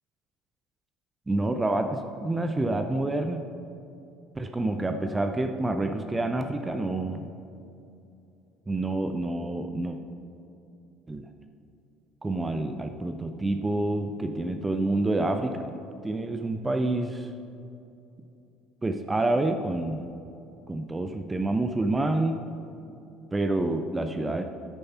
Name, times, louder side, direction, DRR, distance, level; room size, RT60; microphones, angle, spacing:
voice 1, 1.3-3.4 4.4-7.3 8.7-10.0 11.1-11.3 12.2-15.7 16.0-17.3 18.8-20.1 20.7-22.4 23.3-24.4, right 2 dB, 15° right, 6 dB, 0.6 m, -28 dB
9.9 x 6.6 x 5.6 m, 2.7 s
figure-of-eight pair, 60°, 0 cm